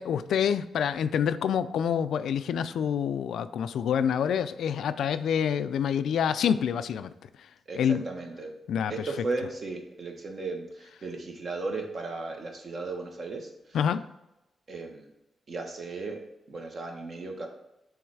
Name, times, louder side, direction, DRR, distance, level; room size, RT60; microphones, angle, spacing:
voice 1, 0.0-7.1 7.4-7.5 7.7-8.0 8.7-8.9 13.7-14.0, left 8 dB, 80° left, 13 dB, 0.3 m, -27 dB
voice 2, 7.7-8.5 8.9-13.8 14.7-15.1 15.5-16.2 16.5-17.5, right 3 dB, 45° right, 2 dB, 1.1 m, -35 dB
7.1 x 3.1 x 4.7 m, 0.92 s
cardioid pair, 115°, 0 cm